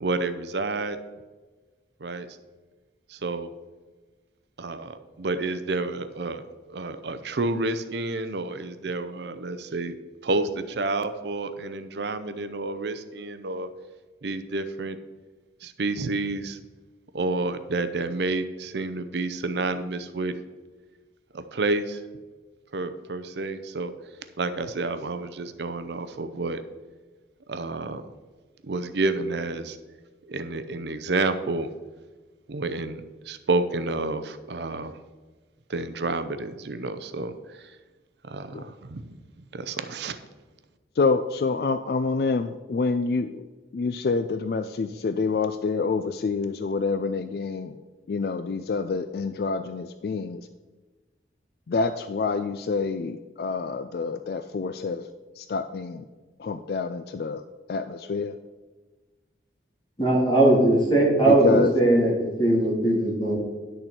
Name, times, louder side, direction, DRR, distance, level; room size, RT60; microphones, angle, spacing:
voice 1, 0.0-1.0 2.0-2.3 3.2-3.5 4.6-6.4 6.7-9.9 10.2-13.7 14.2-15.0 15.6-16.6 17.1-20.3 21.3-22.0 22.7-23.9 24.4-26.6 27.5-28.0 28.7-29.8 30.3-31.7 32.5-33.0 33.3-34.9 35.7-37.3 38.3-38.6 38.9-39.0 39.5-40.2, right 3 dB, 75° right, 11 dB, 0.6 m, -29 dB
voice 2, 41.0-47.7 48.1-50.4 51.7-55.1 55.4-56.0 56.4-57.4 57.7-58.3 61.3-61.7, left 4 dB, 60° left, 9 dB, 0.3 m, -27 dB
voice 3, 60.0-63.3, right 2 dB, 30° left, -6 dB, 3.4 m, -20 dB
10.0 x 6.6 x 4.4 m, 1.3 s
head